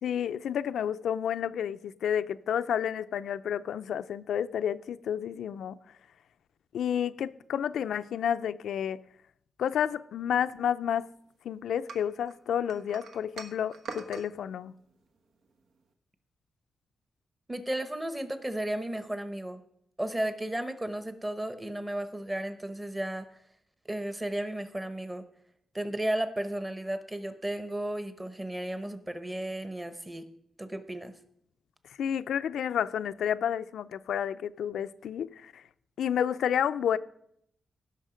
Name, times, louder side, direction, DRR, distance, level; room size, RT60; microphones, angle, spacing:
voice 1, 0.0-5.8 6.7-9.0 9.6-11.1 11.4-14.7 32.0-35.6 36.0-37.0, left 9 dB, 90° left, 0.5 m, -30 dB
sound 1, 11.9-14.3, right 4 dB, 85° right, 1.2 m, -43 dB
voice 2, 17.5-19.6 20.0-23.3 23.8-25.2 25.7-30.3 30.6-31.1, right 1 dB, 15° right, 1.0 m, -34 dB
16.5 x 6.3 x 5.1 m
wide cardioid pair, 120°, 0 cm